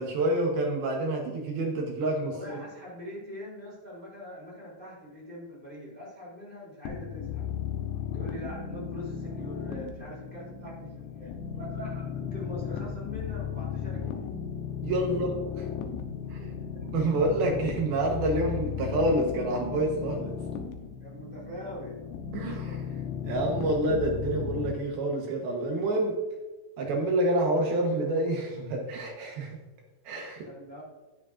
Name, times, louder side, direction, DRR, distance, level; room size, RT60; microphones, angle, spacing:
voice 1, 0.0-2.6 14.8-15.7 16.3-16.4 16.9-20.3 22.3-22.8 23.2-26.2 26.8-29.6 30.1-30.5, right 1 dB, 75° right, 1 dB, 2.2 m, -28 dB
voice 2, 2.2-7.4 8.1-14.3 16.2-16.8 21.0-22.0 22.3-23.1 30.4-30.8, equal, 15° right, -6 dB, 2.2 m, -43 dB
sound 1, 6.9-24.7, left 8 dB, 85° left, 2.5 m, -35 dB
13.0 x 9.8 x 2.5 m, 1.2 s
omnidirectional pair, 5.9 m